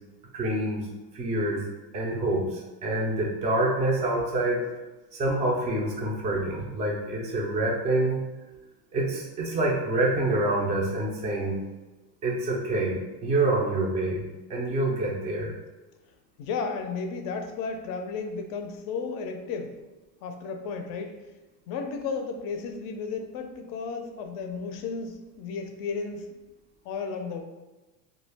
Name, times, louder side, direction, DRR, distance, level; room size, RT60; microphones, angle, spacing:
voice 1, 0.3-0.8 1.1-1.6 1.9-4.6 5.1-8.2 8.9-11.6 12.2-14.2 14.5-15.5, right 2 dB, 15° right, -2 dB, 0.3 m, -26 dB
voice 2, 16.4-19.8 20.2-21.2 21.7-26.3 26.8-27.4, left 5 dB, 45° left, 5 dB, 0.5 m, -33 dB
2.3 x 2.1 x 3.2 m, 1.1 s
supercardioid pair, 110°, 48 cm